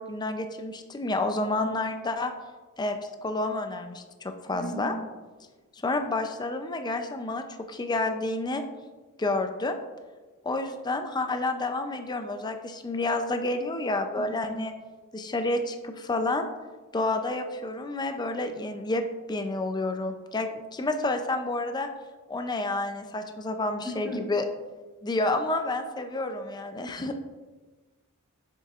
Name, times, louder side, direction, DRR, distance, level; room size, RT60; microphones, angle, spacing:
voice 1, 0.0-2.3 2.8-5.0 5.8-8.6 9.2-9.7 10.4-14.7 15.1-16.5 16.9-19.0 19.3-21.9 22.3-24.4 25.0-27.2, left 2 dB, 20° left, 7 dB, 0.4 m, -29 dB
voice 2, 4.5-5.0 14.2-14.6 23.8-24.2, right 1 dB, ahead, -3 dB, 1.0 m, -36 dB
6.9 x 6.7 x 2.4 m, 1.3 s
head